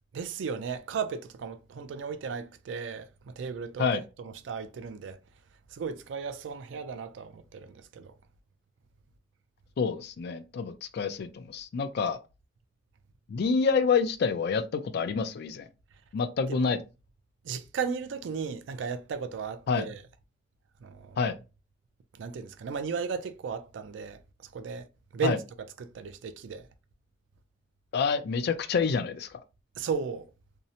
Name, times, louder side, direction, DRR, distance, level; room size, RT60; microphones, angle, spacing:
voice 1, 0.1-5.2 5.7-8.1 16.5-16.7 17.4-20.0 20.8-21.3 22.2-24.2 24.5-24.9 25.1-26.7 29.8-30.3, right 5 dB, 75° right, 0.4 m, -35 dB
voice 2, 9.8-12.2 13.3-15.7 16.1-16.8 19.7-19.8 21.2-21.4 25.2-25.4 27.9-29.3, left 5 dB, 60° left, 0.3 m, -27 dB
2.7 x 2.0 x 2.7 m
head